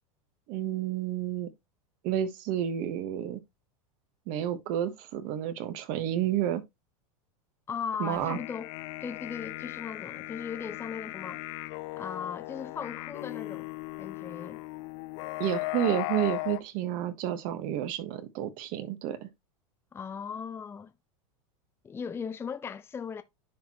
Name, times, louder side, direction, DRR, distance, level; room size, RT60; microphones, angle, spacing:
voice 1, 0.5-1.5 2.0-3.4 4.3-6.6 8.0-8.4 15.4-19.3, right 11 dB, 50° right, 1.4 m, -30 dB
voice 2, 7.7-8.7 9.0-11.4 12.0-13.7 14.0-14.6 19.9-20.9 21.8-23.2, left 6 dB, 15° left, 0.5 m, -37 dB
sound 1, 8.1-16.6, left 21 dB, 60° left, 0.6 m, -37 dB
10.0 x 4.5 x 3.0 m
supercardioid pair, 125°, 18 cm